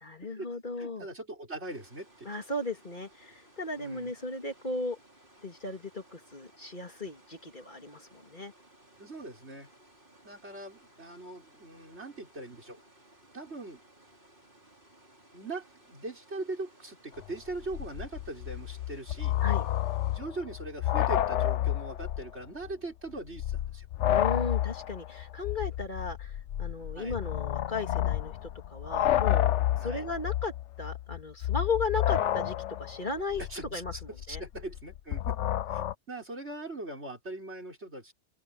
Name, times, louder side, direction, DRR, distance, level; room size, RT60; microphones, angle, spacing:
voice 1, 0.0-1.1 2.2-5.0 5.4-8.5 19.4-19.7 24.1-30.5 30.8-33.4 33.7-33.9 34.3-34.4, left 3 dB, 45° left, 2.9 m, -36 dB
voice 2, 0.8-2.3 3.8-4.1 9.0-9.7 10.2-12.8 13.3-13.8 15.3-19.3 20.1-23.8 26.9-27.2 29.8-30.0 33.5-35.4 35.7-38.1, right 2 dB, 70° right, 6.9 m, -41 dB
sound 1, 1.7-20.2, right 1 dB, 50° right, 5.8 m, -60 dB
sound 2, 17.2-17.3 17.5-22.3 22.6-22.7 23.3-35.9, left 12 dB, 85° left, 1.0 m, -30 dB
open air
omnidirectional pair, 1.2 m